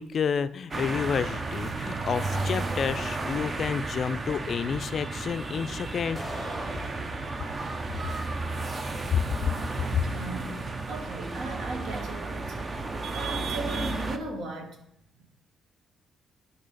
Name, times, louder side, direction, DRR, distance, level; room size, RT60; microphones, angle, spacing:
voice 1, 0.0-6.2 9.1-9.2 9.9-10.0, left 7 dB, 50° left, 13 dB, 0.3 m, -29 dB
sound 1, 0.7-14.2, right 3 dB, 30° right, 0.7 m, -33 dB
sound 2, 6.1-7.2, equal, 15° right, 2.4 m, -39 dB
voice 2, 9.8-10.6 10.9-12.8 13.1-14.8, right 2 dB, 70° right, 4 dB, 1.3 m, -37 dB
10.5 x 3.5 x 4.0 m, 0.74 s
cardioid pair, 90°, 0 cm